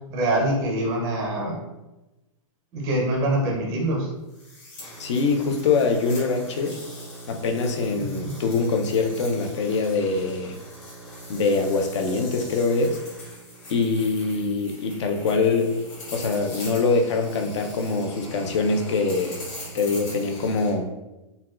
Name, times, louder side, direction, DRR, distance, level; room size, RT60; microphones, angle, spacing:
voice 1, 0.1-1.6 2.7-4.1 8.2-8.3, right 1 dB, 15° right, -1 dB, 0.4 m, -24 dB
sound 1, 4.3-20.7, equal, 35° left, 1.4 m, -41 dB
voice 2, 5.0-6.7 7.3-10.6 11.3-13.0 13.7-15.7 16.1-19.4 19.7-20.9, left 4 dB, 60° left, 4 dB, 0.5 m, -23 dB
4.0 x 2.2 x 2.3 m, 1.0 s
supercardioid pair, 170°, 17 cm